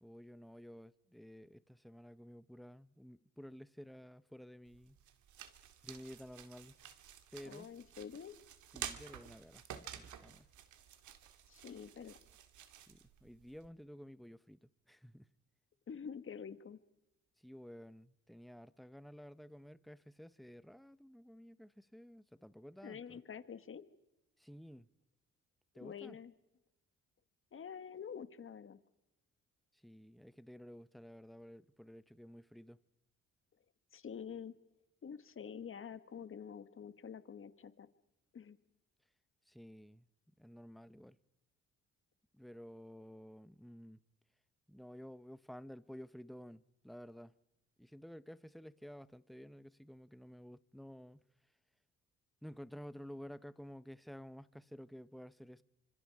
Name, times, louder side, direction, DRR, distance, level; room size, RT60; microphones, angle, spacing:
voice 1, 0.0-5.0 5.8-6.8 7.3-7.7 8.7-10.5 12.9-15.3 17.4-23.2 24.4-24.9 25.7-26.2 29.7-32.8 39.5-40.1 40.4-41.2 42.3-44.0 44.7-47.3 47.8-51.3 52.4-55.6, equal, ahead, 0.9 m, -53 dB
sound 1, 4.7-13.7, right 10 dB, 75° right, 2.2 m, -51 dB
voice 2, 7.4-8.4 11.5-12.2 15.9-16.8 22.8-23.8 25.8-26.3 27.5-28.8 33.9-34.6 35.0-37.9 38.3-38.6, left 7 dB, 45° left, 1.7 m, -47 dB
28.5 x 26.0 x 4.8 m
cardioid pair, 90°, 30 cm